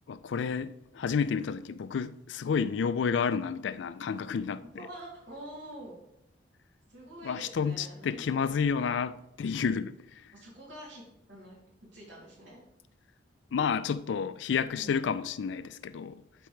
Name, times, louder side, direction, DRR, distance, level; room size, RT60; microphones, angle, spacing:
voice 1, 0.1-4.9 7.2-10.0 13.5-16.2, left 6 dB, 70° left, 0.4 m, -30 dB
voice 2, 4.6-5.9 6.9-8.6 10.3-11.0 11.3-11.6 11.9-12.6 14.7-15.1, right 1 dB, 75° right, 2.9 m, -46 dB
11.5 x 4.3 x 3.2 m
head